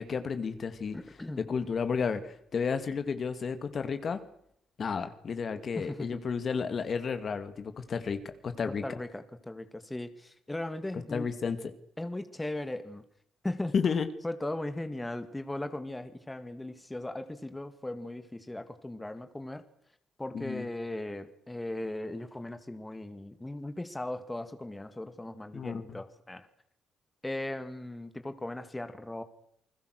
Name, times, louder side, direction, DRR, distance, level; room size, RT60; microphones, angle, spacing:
voice 1, 0.0-1.0 1.4-4.2 4.8-8.8 11.1-11.6 13.7-14.1 20.3-20.7 25.5-26.0, left 5 dB, 50° left, 9 dB, 2.3 m, -32 dB
voice 2, 0.9-1.4 5.8-6.1 8.8-11.3 12.0-13.0 13.4-13.7 14.2-19.6 20.2-26.5 27.2-29.2, left 1 dB, 10° left, 9 dB, 2.1 m, -38 dB
29.0 x 20.5 x 6.6 m, 0.71 s
cardioid pair, 90°, 0 cm